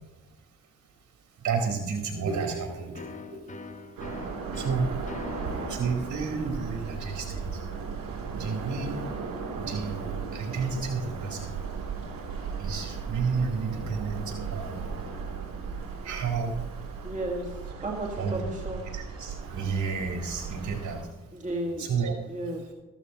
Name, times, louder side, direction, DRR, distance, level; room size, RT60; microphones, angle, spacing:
voice 1, 1.4-3.7 4.5-5.0 5.4-7.7 8.3-9.0 9.5-11.6 12.6-14.9 16.0-16.7 18.2-18.4 18.9-21.1 21.8-22.1, right 5 dB, 60° right, 2 dB, 4.5 m, -31 dB
sound 1, 2.9-10.4, left 2 dB, 25° left, 1.2 m, -45 dB
sound 2, 4.0-21.0, right 5 dB, 75° right, 3.3 m, -36 dB
voice 2, 17.0-18.8 21.3-21.9 22.3-22.7, right 1 dB, 20° right, -1 dB, 2.0 m, -33 dB
15.0 x 14.0 x 3.0 m, 1.1 s
cardioid pair, 70°, 34 cm